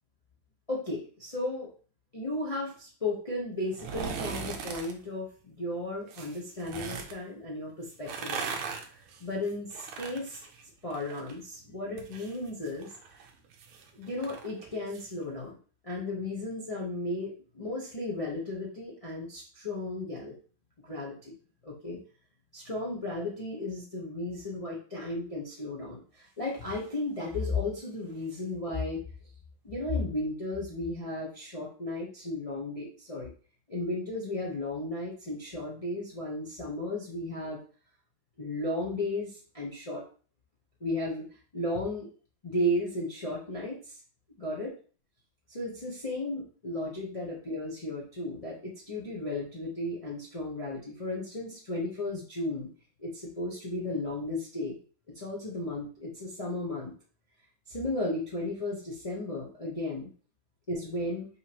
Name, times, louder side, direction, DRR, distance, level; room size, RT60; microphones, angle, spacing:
voice 1, 0.7-1.7 2.1-8.4 8.9-10.4 10.8-12.9 13.9-15.6 15.8-20.4 20.8-21.3 21.6-22.0 22.5-29.0 29.6-33.3 33.7-37.6 38.4-40.0 40.8-41.3 41.5-42.1 42.4-44.0 44.4-44.7 45.5-52.7 53.0-54.8 55.1-56.9 57.7-60.1 60.7-61.3, left 2 dB, 65° left, -4 dB, 0.3 m, -34 dB
sound 1, 3.7-4.9 6.1-7.1 7.9-11.4 11.7-15.1 15.4-15.5, right 6 dB, 85° right, 1.6 m, -39 dB
5.5 x 3.2 x 2.9 m, 0.40 s
omnidirectional pair, 2.3 m